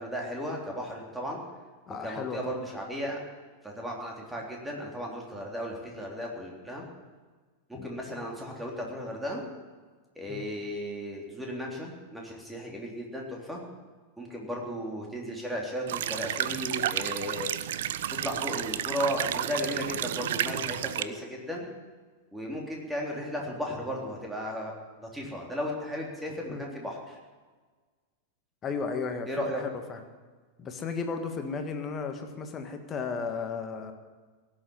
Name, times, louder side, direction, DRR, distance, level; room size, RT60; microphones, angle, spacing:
voice 1, 0.0-1.4 2.0-3.2 3.6-6.9 7.7-9.5 10.2-13.6 14.2-17.5 18.2-21.7 22.3-24.7 25.0-27.2 29.3-29.6, equal, 5° right, -1 dB, 3.5 m, -35 dB
voice 2, 1.9-2.6 7.7-7.9 10.3-10.4 26.5-26.6 28.6-30.0 30.6-33.9, left 5 dB, 25° left, 6 dB, 1.7 m, -34 dB
sound 1, 15.9-21.0, right 11 dB, 55° right, 0.5 m, -31 dB
17.5 x 7.8 x 9.8 m, 1.4 s
figure-of-eight pair, 90°, 0 cm